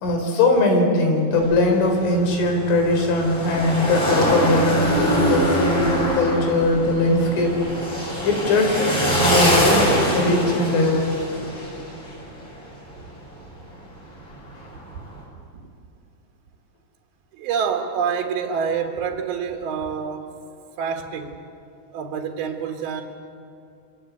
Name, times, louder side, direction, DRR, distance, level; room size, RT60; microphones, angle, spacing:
voice 1, 0.0-7.5 8.2-11.1, left 2 dB, 75° left, 3 dB, 6.5 m, -20 dB
sound 1, 1.4-12.4 12.6-12.7 14.8-15.0, equal, 25° left, 6.9 m, -23 dB
voice 2, 17.3-20.3 20.8-21.4 21.9-23.0, right 6 dB, 60° right, 3 dB, 3.0 m, -27 dB
26.0 x 24.0 x 8.4 m, 2.4 s
omnidirectional pair, 5.7 m